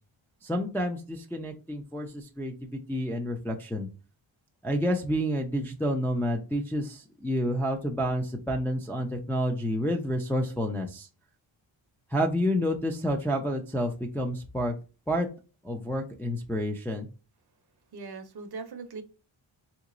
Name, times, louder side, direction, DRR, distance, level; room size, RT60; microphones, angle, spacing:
voice 1, 0.4-3.9 4.6-11.1 12.1-14.7 15.1-15.3 15.6-17.1, equal, 5° left, 0.3 m, -29 dB
voice 2, 17.9-19.0, right 4 dB, 50° right, 0.7 m, -40 dB
3.6 x 2.9 x 2.4 m
wide cardioid pair, 155°, 49 cm